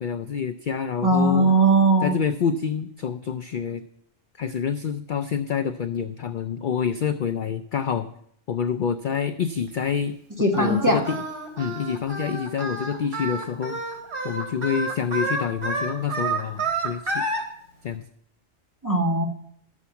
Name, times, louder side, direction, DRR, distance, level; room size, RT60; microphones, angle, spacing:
voice 1, 0.0-1.5 2.0-3.9 4.4-8.1 8.5-11.2 11.6-13.8 14.2-17.2 17.8-18.0, left 7 dB, 55° left, 10 dB, 0.6 m, -27 dB
voice 2, 1.0-2.2 10.4-11.0 18.8-19.2, right 2 dB, 15° right, 1 dB, 1.6 m, -19 dB
Singing, 10.5-17.4, right 2 dB, 55° right, 3.5 m, -29 dB
12.5 x 7.3 x 7.0 m, 0.69 s
omnidirectional pair, 1.3 m